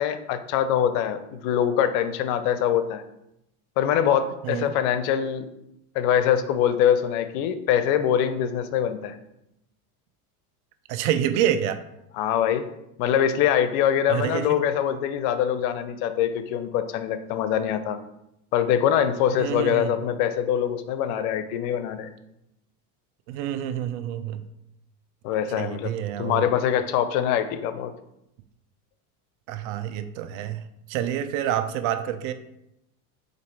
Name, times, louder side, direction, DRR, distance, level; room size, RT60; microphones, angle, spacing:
voice 1, 0.0-3.0 3.8-5.5 5.9-9.1 12.2-12.7 13.0-18.0 18.5-22.1 25.2-25.9 26.2-27.9, left 9 dB, 65° left, 11 dB, 0.6 m, -23 dB
voice 2, 10.9-11.8 14.1-14.5 19.3-19.9 23.3-24.4 25.6-26.5 29.5-32.3, right 10 dB, 60° right, 10 dB, 0.6 m, -27 dB
4.1 x 2.6 x 4.5 m, 0.83 s
hypercardioid pair, 95°, 46 cm